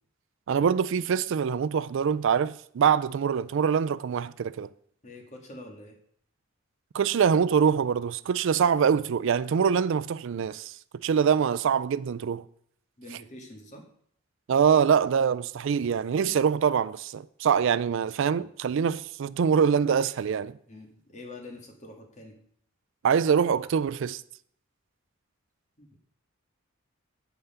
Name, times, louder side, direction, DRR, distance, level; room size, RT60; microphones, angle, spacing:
voice 1, 0.5-4.7 6.9-12.4 14.5-20.6 23.0-24.2, right 7 dB, 65° right, 0.4 m, -24 dB
voice 2, 5.0-5.9 13.0-13.8 20.7-22.3 25.8-26.0, left 2 dB, 35° left, 1.7 m, -45 dB
7.9 x 5.6 x 5.7 m
head